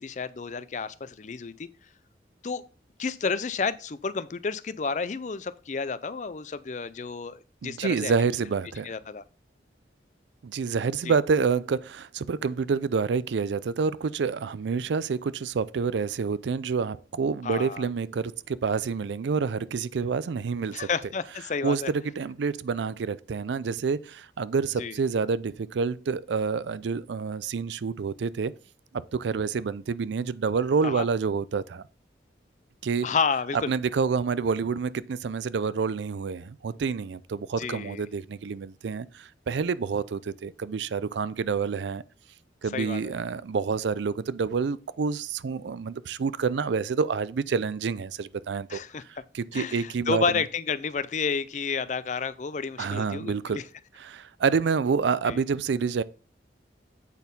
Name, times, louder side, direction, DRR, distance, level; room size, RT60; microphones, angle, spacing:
voice 1, 0.0-1.7 2.4-2.6 3.0-8.1 8.8-9.2 11.0-11.1 17.4-17.9 20.7-21.9 24.8-24.9 30.8-31.1 33.0-33.7 37.6-38.0 42.7-43.1 48.7-49.0 49.5-53.6 55.3-55.4, left 5 dB, 40° left, 0.4 m, -31 dB
voice 2, 7.6-8.9 10.4-20.9 21.6-28.5 28.9-31.9 32.8-33.1 33.5-42.0 42.6-48.8 49.1-50.4 52.8-53.6 54.0-56.0, right 5 dB, 80° right, 0.4 m, -28 dB
8.3 x 4.3 x 5.3 m
head